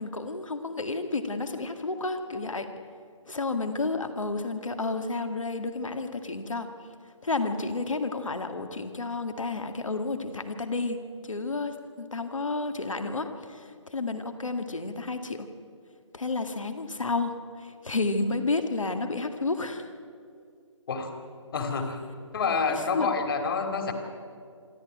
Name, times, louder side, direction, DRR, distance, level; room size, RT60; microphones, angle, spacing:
voice 1, 0.0-2.7 3.3-6.7 7.2-11.0 11.2-15.5 16.1-19.9 22.9-23.1, left 3 dB, 80° left, 7 dB, 2.0 m, -31 dB
voice 2, 21.5-22.0 22.3-23.9, left 5 dB, 45° left, 5 dB, 2.8 m, -28 dB
26.0 x 12.0 x 9.2 m, 2.3 s
figure-of-eight pair, 150°, 16 cm